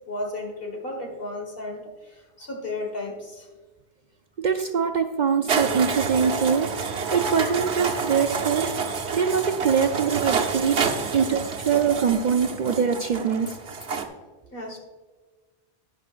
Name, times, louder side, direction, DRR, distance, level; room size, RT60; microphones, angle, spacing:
voice 1, 0.1-3.5 10.5-10.6 14.5-14.8, left 2 dB, 60° left, 2 dB, 1.9 m, -34 dB
voice 2, 4.4-8.7 9.1-10.8 11.1-13.6, right 6 dB, 55° right, 6 dB, 0.6 m, -23 dB
sound 1, 5.5-14.1, right 5 dB, 90° right, 1.2 m, -28 dB
11.5 x 9.7 x 2.5 m, 1.3 s
omnidirectional pair, 1.1 m